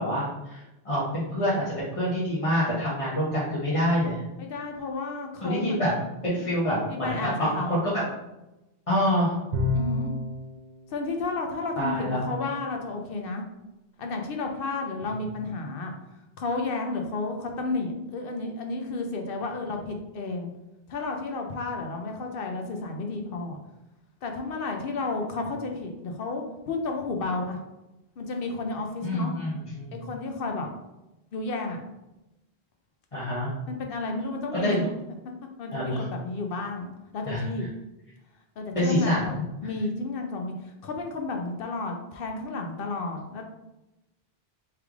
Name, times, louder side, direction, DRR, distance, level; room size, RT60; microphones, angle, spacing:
voice 1, 0.0-4.2 5.4-5.9 6.2-8.0 8.9-9.3 11.8-12.3 29.0-30.0 33.1-33.5 34.5-34.8 35.7-36.0 37.3-37.7 38.7-39.4, equal, 35° left, -9 dB, 1.0 m, -26 dB
voice 2, 4.4-5.8 6.9-7.7 9.7-10.1 10.9-13.4 14.0-15.9 16.4-20.5 20.9-23.6 24.2-27.6 28.2-29.3 30.0-30.7 31.3-31.8 33.7-34.9 35.6-37.7 38.6-40.5 40.8-43.4, left 3 dB, 65° left, 3 dB, 0.8 m, -32 dB
Bowed string instrument, 9.5-10.4, left 2 dB, 50° right, 0.7 m, -27 dB
3.3 x 3.3 x 3.5 m, 0.97 s
omnidirectional pair, 1.1 m